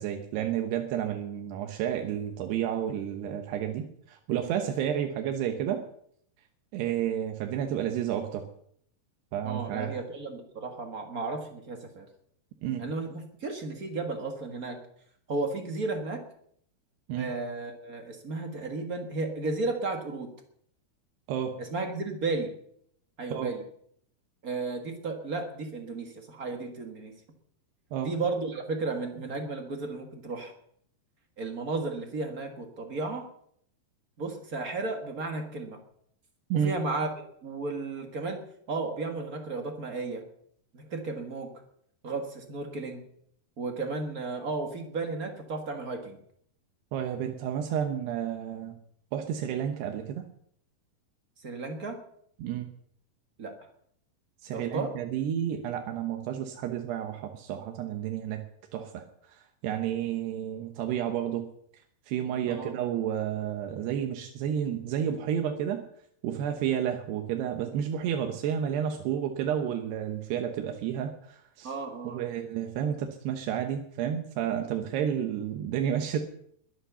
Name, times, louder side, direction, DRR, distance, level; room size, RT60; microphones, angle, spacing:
voice 1, 0.0-5.8 6.7-8.5 9.3-9.9 12.6-12.8 17.1-17.3 21.3-21.6 23.3-23.5 27.9-28.1 36.5-36.7 46.9-48.8 49.1-50.3 52.4-52.7 54.4-58.4 58.7-61.5 62.1-65.8 66.2-71.7 72.0-76.2, right 9 dB, 90° right, 5 dB, 3.2 m, -31 dB
voice 2, 9.4-12.1 12.8-14.8 15.3-16.2 17.1-20.3 21.6-22.5 23.2-23.6 24.4-27.1 28.0-30.5 31.4-33.3 34.2-35.8 36.6-38.4 38.7-40.2 40.7-41.5 42.0-43.0 43.6-46.2 51.4-52.0 53.4-53.5 54.5-54.9 62.5-62.7 71.6-72.2, right 3 dB, 70° right, 4 dB, 0.8 m, -34 dB
21.5 x 8.9 x 7.0 m, 0.67 s
omnidirectional pair, 4.6 m